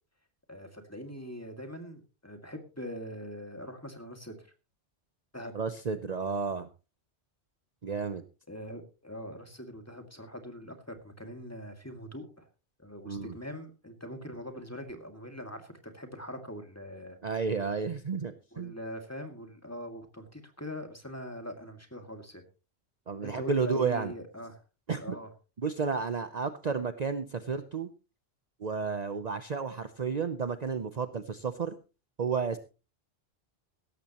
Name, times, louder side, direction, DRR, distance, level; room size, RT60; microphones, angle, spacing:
voice 1, 0.5-4.5 5.3-5.5 8.5-12.5 12.8-17.2 18.5-22.4 23.2-24.6 25.0-25.3, equal, 15° left, 5 dB, 2.1 m, -42 dB
voice 2, 5.5-6.7 7.8-8.2 13.1-13.4 17.2-18.7 23.1-24.1 24.9-25.0 25.6-27.9 28.6-31.7 32.2-32.6, right 5 dB, 40° right, 10 dB, 0.8 m, -32 dB
16.5 x 14.0 x 3.0 m, 0.32 s
omnidirectional pair, 1.1 m